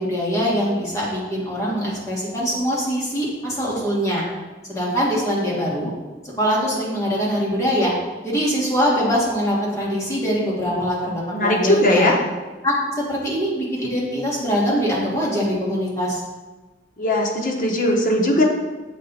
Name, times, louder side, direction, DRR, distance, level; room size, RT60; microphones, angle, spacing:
voice 1, 0.0-4.3 4.7-5.9 6.4-7.9 8.2-12.1 12.6-16.2, equal, 20° left, -6 dB, 1.5 m, -23 dB
voice 2, 11.3-12.2 17.0-18.4, left 1 dB, 50° left, 0 dB, 0.9 m, -19 dB
7.3 x 3.3 x 4.0 m, 1.2 s
head